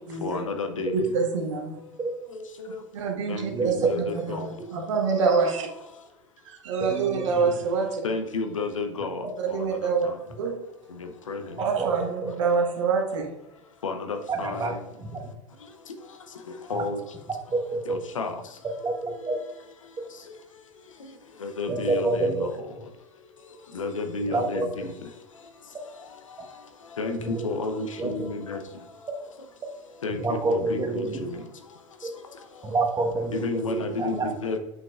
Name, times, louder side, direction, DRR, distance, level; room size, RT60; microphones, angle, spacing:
voice 1, 0.2-0.9 2.6-2.7 3.3-4.5 8.0-9.6 11.3-11.4 13.8-14.6 16.7-17.0 17.9-18.3 21.4-22.5 23.7-24.9 27.0-28.6 30.0-30.2 30.5-31.0 33.3-34.6, left 3 dB, 85° left, 6 dB, 0.9 m, -31 dB
voice 2, 0.9-1.8 2.9-5.7 6.4-8.0 9.4-10.1 10.4-10.6 11.6-13.3, right 5 dB, 70° right, 1 dB, 1.5 m, -26 dB
voice 3, 3.5-3.9 6.8-7.5 11.6-11.9 14.3-14.8 15.1-15.2 16.7-16.8 17.5-18.0 18.8-19.4 21.7-22.5 24.3-24.7 27.2-27.4 28.0-28.1 30.2-31.1 32.6-34.3, right 3 dB, 25° right, 3 dB, 1.4 m, -27 dB
7.5 x 6.0 x 2.5 m, 0.90 s
hypercardioid pair, 90°, 16 cm